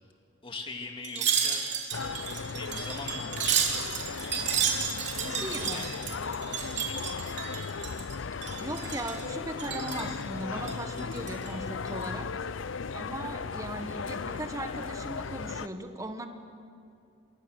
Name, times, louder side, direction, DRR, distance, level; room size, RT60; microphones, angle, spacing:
voice 1, 0.4-1.6 2.5-3.7 4.2-4.8 5.4-6.2 6.8-7.0, left 3 dB, 25° left, 3 dB, 2.3 m, -41 dB
Wind chime, 1.0-8.1 8.4-9.2 9.6-10.1 10.6-11.5 11.9-12.1, right 8 dB, 60° right, 3.5 m, -32 dB
sound 1, 1.9-15.7, left 5 dB, 80° left, 0.6 m, -36 dB
voice 2, 5.2-5.9 8.6-12.4 12.9-16.3, right 1 dB, 15° right, 6 dB, 1.6 m, -38 dB
27.0 x 23.0 x 6.6 m, 2.5 s
head